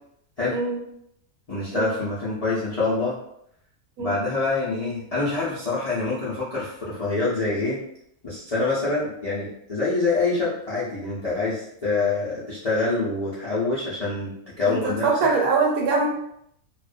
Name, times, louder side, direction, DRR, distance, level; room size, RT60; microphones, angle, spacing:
voice 1, 0.5-0.8 1.7-1.9 4.0-4.2 14.7-16.1, right 4 dB, 85° right, 0 dB, 1.1 m, -23 dB
voice 2, 1.5-3.2 4.0-7.8 8.2-15.3, left 3 dB, 55° left, -10 dB, 0.4 m, -26 dB
2.4 x 2.1 x 2.4 m, 0.73 s
omnidirectional pair, 1.5 m